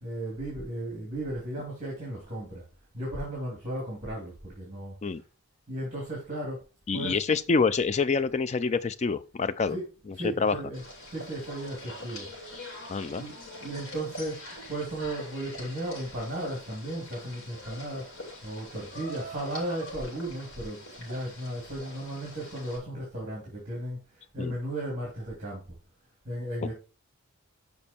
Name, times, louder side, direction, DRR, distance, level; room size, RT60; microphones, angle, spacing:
voice 1, 0.0-2.6 2.9-4.9 5.7-6.6 6.9-7.2 9.7-9.8 10.1-10.8 11.1-12.3 13.2-14.4 14.7-18.1 18.4-24.0 24.3-25.6 26.2-26.7, right 1 dB, 35° right, 2.7 m, -35 dB
voice 2, 6.9-9.8 10.2-10.6 12.9-13.2 24.4-24.5 26.6-26.7, left 4 dB, 30° left, 0.3 m, -26 dB
sound 1, 10.7-22.8, left 1 dB, 70° left, 3.6 m, -44 dB
7.1 x 5.3 x 4.3 m
head